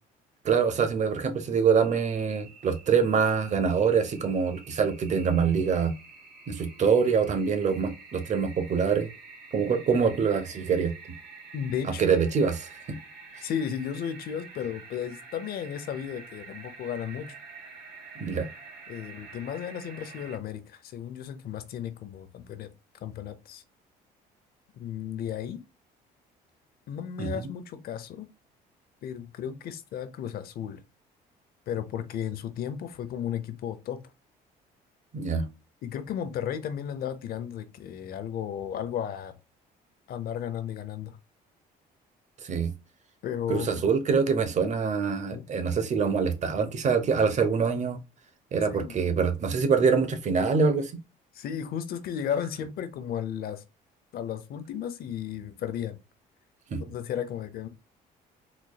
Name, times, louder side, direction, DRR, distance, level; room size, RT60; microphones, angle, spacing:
voice 1, 0.4-5.9 6.5-9.1 9.5-10.9 11.8-13.0 18.2-18.5 27.2-27.5 35.1-35.5 42.4-42.7 43.5-48.0 48.5-50.9 56.7-56.8, right 6 dB, 45° right, 0.8 m, -25 dB
sound 1, 1.8-20.4, right 4 dB, 70° right, 1.7 m, -48 dB
voice 2, 11.5-12.2 13.4-17.4 18.9-22.7 23.0-23.6 24.7-25.6 26.9-28.3 29.0-30.8 31.7-34.1 35.8-39.3 40.1-41.2 43.2-43.7 45.3-45.4 48.6-49.0 51.3-53.6 54.1-56.0 56.8-57.7, left 9 dB, 65° left, 0.7 m, -34 dB
4.1 x 3.0 x 2.2 m
cardioid pair, 110°, 17 cm